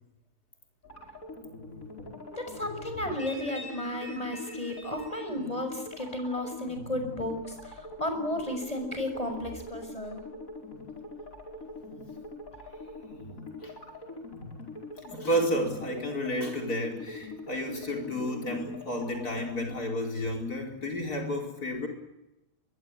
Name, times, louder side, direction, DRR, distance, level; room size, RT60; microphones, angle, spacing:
sound 1, 0.8-19.6, left 2 dB, 65° left, 5.9 m, -43 dB
voice 1, 2.3-10.2, left 1 dB, 25° left, 6 dB, 6.5 m, -34 dB
voice 2, 15.0-21.9, equal, 85° left, 1 dB, 5.0 m, -31 dB
24.5 x 22.0 x 9.7 m, 0.93 s
omnidirectional pair, 1.6 m